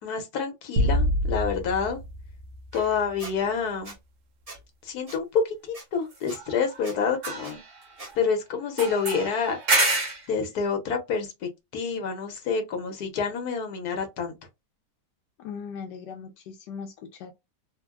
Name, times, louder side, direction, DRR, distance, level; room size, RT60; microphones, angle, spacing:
voice 1, 0.0-2.0 2.7-3.9 4.8-7.6 8.1-9.6 10.3-14.3, left 6 dB, 65° left, 1.4 m, -28 dB
sound 1, 0.8-3.2, equal, 80° right, 1.3 m, -27 dB
sound 2, 2.7-2.9 6.1-6.9 7.1-8.3 8.8-10.3, right 2 dB, 45° right, 1.7 m, -28 dB
Squeak, 3.2-3.3 3.8-4.0 4.5-4.6 5.1-5.2 5.7-5.8 6.3-6.4 6.8-7.0 7.4-7.5 8.0-8.1, right 2 dB, 25° right, 1.0 m, -42 dB
voice 2, 15.4-17.3, left 6 dB, 85° left, 1.2 m, -39 dB
3.6 x 2.2 x 2.3 m
omnidirectional pair, 1.8 m